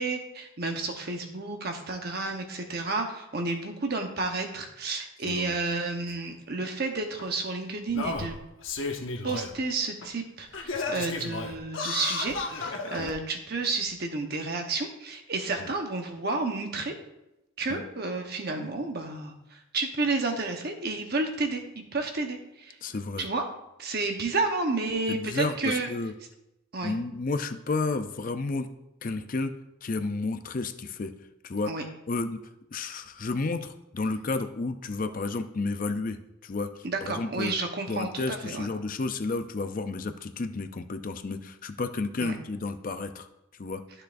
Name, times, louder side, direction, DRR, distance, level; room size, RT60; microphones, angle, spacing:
voice 1, 0.0-8.4 9.2-17.0 17.6-21.6 21.9-22.8 23.2-23.4 23.8-25.9 26.7-26.9 31.7-31.9 36.8-38.7 42.2-42.3, right 3 dB, 50° right, 4 dB, 1.0 m, -31 dB
Singing, 6.1-6.2 7.2-7.3 7.9-9.5 10.0-10.1 10.5-13.1 13.9-14.0, left 3 dB, 65° left, 0.9 m, -33 dB
voice 2, 22.8-23.3 25.1-26.1 26.8-28.7 29.0-29.5 29.8-31.1 31.4-31.7 32.1-32.4 32.7-37.5 37.9-43.3 43.6-43.8, left 3 dB, 40° left, 8 dB, 0.5 m, -31 dB
12.5 x 6.5 x 2.6 m, 0.91 s
head